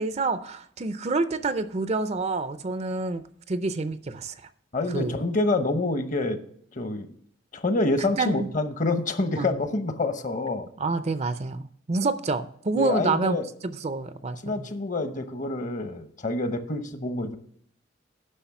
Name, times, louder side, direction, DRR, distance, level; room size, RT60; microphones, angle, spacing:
voice 1, 0.0-4.3 4.9-5.2 8.0-8.5 9.4-9.5 10.8-11.6 11.9-13.4 13.8-14.7, right 3 dB, 35° right, 12 dB, 0.5 m, -28 dB
voice 2, 4.7-6.4 6.7-7.1 7.5-10.7 12.7-13.4 14.4-17.4, left 2 dB, 40° left, 9 dB, 1.0 m, -27 dB
10.0 x 6.1 x 5.9 m, 0.64 s
head